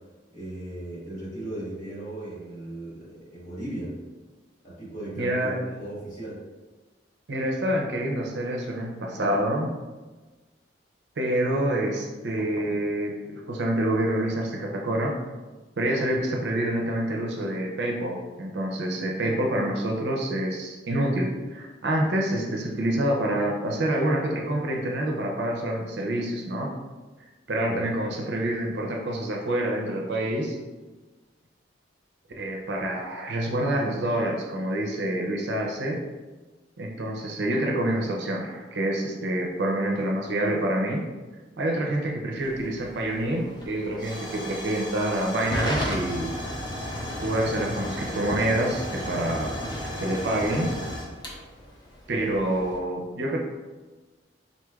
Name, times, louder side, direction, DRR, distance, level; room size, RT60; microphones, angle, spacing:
voice 1, 0.3-4.0 4.6-6.4 27.5-28.0, right 1 dB, 45° left, -8 dB, 1.4 m, -37 dB
voice 2, 5.2-5.6 7.3-9.7 11.2-15.2 15.8-26.7 27.5-30.6 32.4-36.0 36.8-41.0 41.6-46.3 47.2-49.5 50.0-50.8 52.1-53.4, right 1 dB, 70° right, -1 dB, 0.5 m, -27 dB
Hiss / Fire / Tick, 42.4-52.8, equal, 25° left, 0.6 m, -34 dB
4.0 x 3.1 x 2.3 m, 1.3 s
head